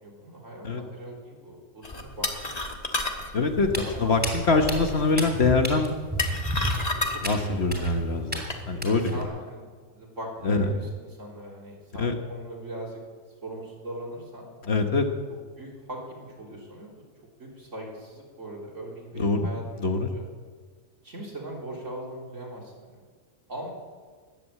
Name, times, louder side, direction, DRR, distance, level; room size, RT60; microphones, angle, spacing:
voice 1, 0.0-2.6 3.9-4.4 7.1-7.6 8.9-9.7 9.9-13.0 13.4-14.5 15.3-17.0 17.4-20.2 21.0-23.0 23.5-23.7, right 1 dB, 60° right, -2 dB, 3.9 m, -40 dB
sound 1, 1.8-8.6, left 2 dB, 30° left, 1.5 m, -33 dB
voice 2, 3.3-3.7 4.0-5.9 7.2-9.3 10.4-10.7 12.0-12.2 14.6-15.1 19.1-19.5 19.8-20.1, left 3 dB, 50° left, 5 dB, 1.4 m, -24 dB
Walk footsteps, 3.6-9.2, equal, 5° right, 3.1 m, -33 dB
14.0 x 11.0 x 8.3 m, 1.5 s
omnidirectional pair, 1.4 m